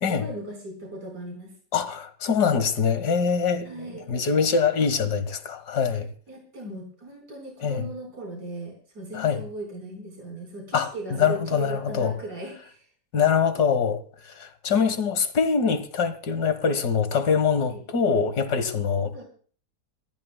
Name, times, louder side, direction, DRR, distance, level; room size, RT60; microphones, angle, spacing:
voice 1, 0.1-1.5 3.6-4.1 6.3-12.9 17.7-17.8 19.1-19.3, right 2 dB, 80° right, 4.9 m, -37 dB
voice 2, 1.7-6.1 7.6-7.8 9.1-9.4 10.7-12.1 13.1-19.1, left 6 dB, 75° left, 2.0 m, -24 dB
27.0 x 14.5 x 2.2 m
omnidirectional pair, 1.8 m